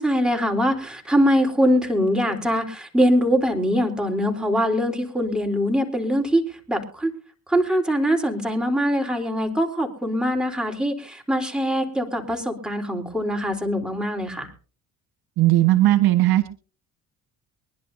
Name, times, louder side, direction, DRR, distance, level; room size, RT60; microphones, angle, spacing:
voice 1, 0.0-6.4 6.7-7.1 7.5-14.5, equal, ahead, 3 dB, 3.7 m, -22 dB
voice 2, 15.4-16.5, right 15 dB, 65° right, 10 dB, 1.5 m, -17 dB
23.5 x 11.0 x 2.7 m, 0.37 s
supercardioid pair, 75°, 39 cm